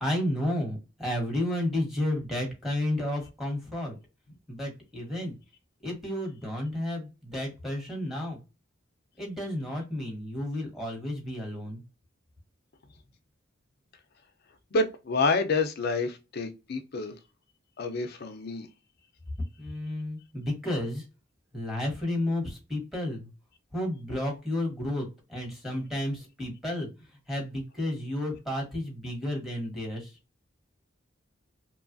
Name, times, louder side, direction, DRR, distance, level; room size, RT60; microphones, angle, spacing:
voice 1, 0.0-3.9 4.5-5.3 5.8-8.4 9.2-11.8 19.6-21.0 21.5-23.3 23.7-26.9 27.3-30.1, left 1 dB, ahead, 1.1 m, -32 dB
voice 2, 14.7-17.2 17.8-18.7, left 3 dB, 55° left, 0.5 m, -28 dB
3.0 x 2.3 x 2.5 m
head